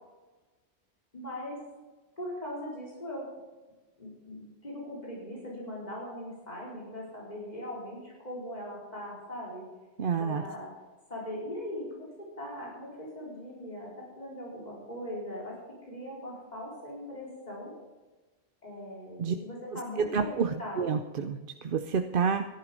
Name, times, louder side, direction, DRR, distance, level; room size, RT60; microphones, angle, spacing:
voice 1, 1.1-1.6 2.2-3.3 4.0-9.7 10.2-10.7 11.1-17.7 18.6-21.0, left 1 dB, 40° left, -5 dB, 4.8 m, -40 dB
voice 2, 10.0-10.4 19.2-19.3 20.0-22.5, right 6 dB, 60° right, 7 dB, 0.8 m, -29 dB
14.0 x 11.5 x 5.2 m, 1.2 s
omnidirectional pair, 1.1 m